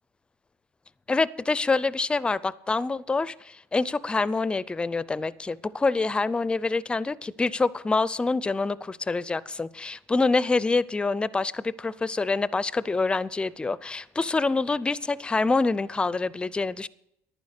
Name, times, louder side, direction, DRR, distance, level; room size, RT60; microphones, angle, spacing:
voice 1, 1.1-16.9, left 3 dB, 15° left, 0.5 m, -26 dB
11.0 x 9.6 x 6.6 m
supercardioid pair, 100°, 6 cm